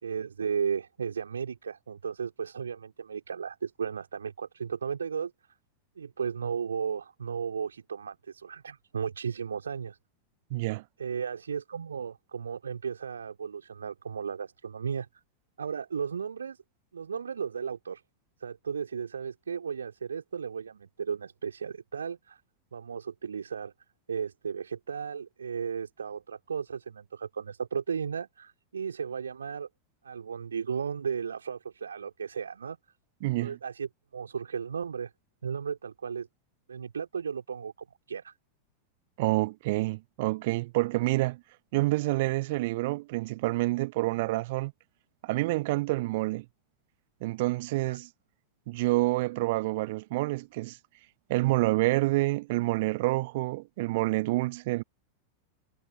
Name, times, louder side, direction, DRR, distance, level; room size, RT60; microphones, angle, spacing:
voice 1, 0.0-5.3 6.0-10.0 11.0-15.1 15.6-16.6 16.9-18.0 18.4-22.4 22.7-23.7 24.1-29.7 30.0-32.8 33.4-35.1 35.4-36.3 36.7-37.7 38.1-38.3 47.8-48.0, right 6 dB, 70° right, 3.2 m, -35 dB
voice 2, 10.5-10.8 33.2-33.6 39.2-41.4 41.7-44.7 45.2-46.4 47.2-48.1 48.7-50.8 51.3-54.8, right 20 dB, 50° right, 0.8 m, -28 dB
figure-of-eight pair, 90°, 0 cm